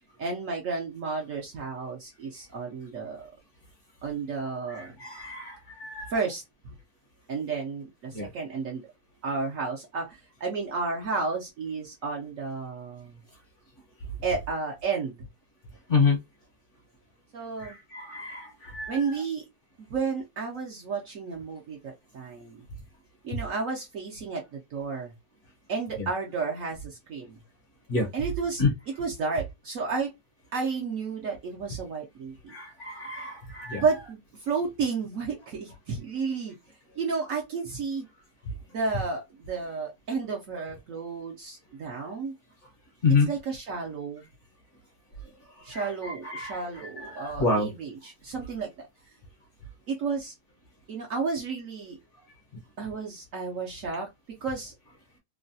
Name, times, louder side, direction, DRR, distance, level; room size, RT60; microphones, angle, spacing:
voice 1, 0.2-3.3 4.0-5.0 6.1-6.4 7.3-8.9 9.2-13.2 14.2-15.2 17.3-17.8 18.9-19.4 19.8-22.6 23.2-25.1 25.7-27.4 28.1-28.6 29.0-30.1 30.5-32.5 33.7-36.5 37.0-38.1 38.7-42.3 43.3-44.3 45.6-48.7 49.9-50.3 50.9-52.0 52.8-54.1 54.4-54.7, right 4 dB, 60° right, 0.9 m, -32 dB
voice 2, 4.7-6.1 8.1-8.3 15.9-16.2 17.6-19.0 26.0-26.1 27.9-28.1 28.6-28.7 32.5-33.8 43.0-43.3 45.7-46.6 47.0-47.7, left 4 dB, 55° left, 0.9 m, -28 dB
3.1 x 2.2 x 2.6 m
omnidirectional pair, 1.9 m